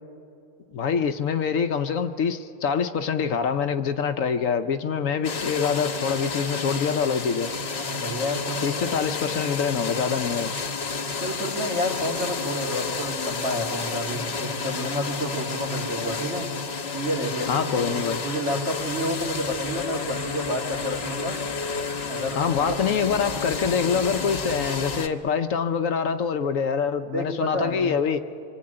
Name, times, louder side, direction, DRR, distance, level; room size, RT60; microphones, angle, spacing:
voice 1, 0.7-7.5 8.6-10.6 17.5-18.2 22.4-28.2, left 6 dB, 65° left, 9 dB, 1.1 m, -25 dB
sound 1, 5.2-25.1, left 4 dB, 50° left, 1.3 m, -31 dB
voice 2, 7.8-8.7 11.2-16.5 16.9-17.5 18.2-21.4 22.1-22.8 27.1-27.9, equal, 55° right, -1 dB, 3.2 m, -30 dB
25.0 x 24.0 x 8.8 m, 2.7 s
omnidirectional pair, 1.5 m